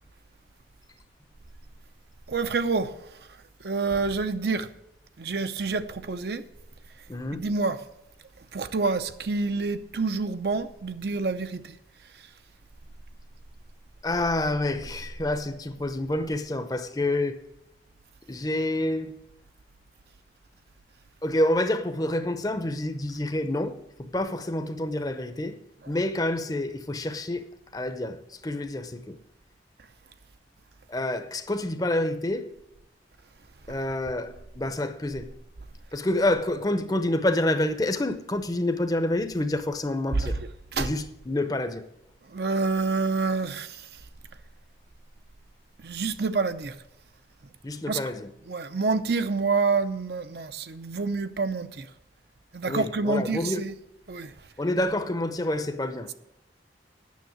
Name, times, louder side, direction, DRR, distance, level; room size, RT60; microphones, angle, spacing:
voice 1, 2.3-2.9 3.6-4.7 5.2-6.4 7.3-7.8 8.5-11.6 40.1-40.4 40.7-41.0 42.3-43.7 45.8-46.7 47.9-48.0 48.5-51.8 52.5-53.7 54.1-54.3, right 4 dB, 65° right, 0.6 m, -27 dB
voice 2, 7.1-7.4 14.0-17.4 18.3-19.1 21.2-25.6 25.9-29.2 30.9-32.5 33.7-35.3 35.9-40.4 40.8-41.8 47.6-48.3 52.6-53.7 54.6-56.1, left 1 dB, 20° left, 0.6 m, -28 dB
9.4 x 6.4 x 7.8 m
head